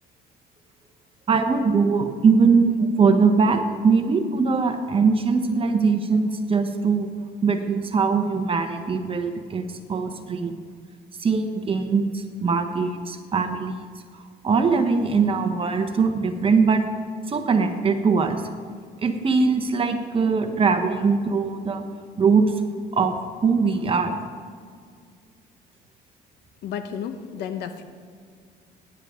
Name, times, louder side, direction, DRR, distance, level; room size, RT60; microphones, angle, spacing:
voice 1, 1.3-7.1 7.4-10.5 11.2-13.8 14.4-16.8 17.3-18.4 19.0-21.8 22.2-22.5 22.9-23.1 23.4-24.2, right 5 dB, 30° right, 6 dB, 1.1 m, -21 dB
voice 2, 26.6-27.8, left 8 dB, 75° left, 8 dB, 1.0 m, -32 dB
17.5 x 10.0 x 3.8 m, 2.1 s
cardioid pair, 110°, 17 cm